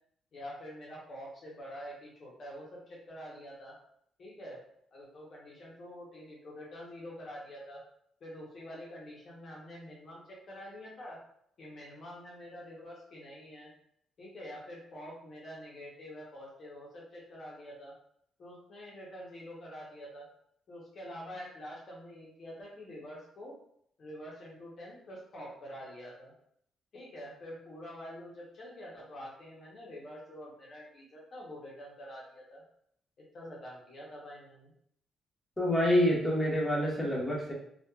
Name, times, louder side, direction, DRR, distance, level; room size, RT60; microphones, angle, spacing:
voice 1, 0.3-3.7 4.2-4.6 4.9-7.8 8.2-11.2 11.6-13.7 14.2-17.9 18.4-20.2 20.7-23.5 24.0-26.3 26.9-32.6 33.3-34.7, equal, 50° left, -4 dB, 0.7 m, -46 dB
voice 2, 35.6-37.5, equal, 15° left, -5 dB, 0.9 m, -27 dB
2.9 x 2.2 x 2.2 m, 0.69 s
cardioid pair, 90°, 0 cm